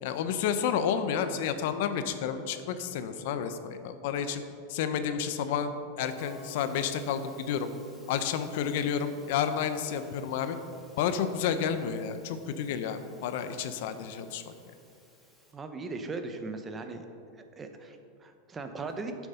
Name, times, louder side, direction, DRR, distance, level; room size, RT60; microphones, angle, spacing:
voice 1, 0.0-4.4 4.7-7.7 8.1-10.6 11.0-14.5, left 7 dB, 65° left, 10 dB, 0.8 m, -30 dB
Musical instrument, 6.0-15.5, right 1 dB, ahead, 1.8 m, -54 dB
voice 2, 15.5-17.1 17.3-19.3, right 3 dB, 15° right, 7 dB, 0.8 m, -39 dB
11.0 x 7.2 x 5.6 m, 2.4 s
supercardioid pair, 145°, 0 cm